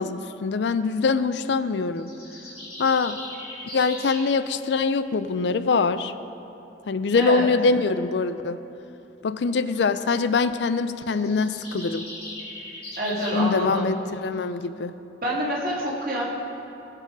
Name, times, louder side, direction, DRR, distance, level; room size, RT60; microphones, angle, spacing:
voice 1, 0.0-2.1 2.8-3.2 3.7-6.1 6.9-8.6 9.2-12.1 13.3-14.9, left 4 dB, 70° left, 12 dB, 0.4 m, -23 dB
sound 1, 2.0-4.3 10.9-13.4, left 1 dB, 35° left, 3.0 m, -38 dB
voice 2, 7.1-7.5 13.0-13.9 15.2-16.3, equal, 50° right, -4 dB, 2.3 m, -27 dB
19.0 x 6.7 x 4.8 m, 2.9 s
head